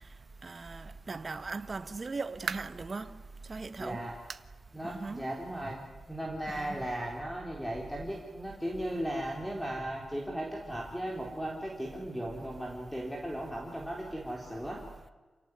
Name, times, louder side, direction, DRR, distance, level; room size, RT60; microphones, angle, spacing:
voice 1, 0.4-3.1 3.5-4.0 4.8-5.2 6.5-6.8, right 3 dB, 30° right, 1.5 m, -39 dB
sound 1, 2.5-2.9 3.4-3.5 4.3-4.6 4.9-5.0 5.5-5.6 6.7-6.8, right 6 dB, 55° right, 0.9 m, -40 dB
voice 2, 3.8-4.1 4.7-5.8 6.1-14.8, right 1 dB, ahead, 3.8 m, -36 dB
28.0 x 18.0 x 9.7 m
wide cardioid pair, 170°, 0 cm